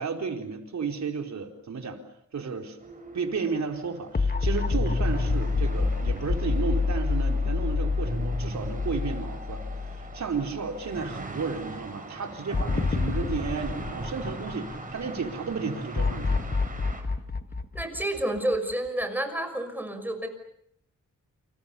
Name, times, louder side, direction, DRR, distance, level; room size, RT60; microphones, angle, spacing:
voice 1, 0.0-2.0 2.3-2.8 3.1-9.6 9.9-16.4, right 5 dB, 60° right, 4 dB, 4.1 m, -33 dB
sound 1, 2.8-17.0, right 2 dB, 25° right, 6.3 m, -39 dB
sound 2, 4.1-10.5 10.9-11.0 12.5-15.0 15.9-18.7, left 4 dB, 30° left, 1.4 m, -27 dB
voice 2, 17.7-20.3, right 1 dB, 5° right, 7 dB, 6.2 m, -29 dB
29.0 x 27.0 x 7.0 m, 0.72 s
wide cardioid pair, 100°, 31 cm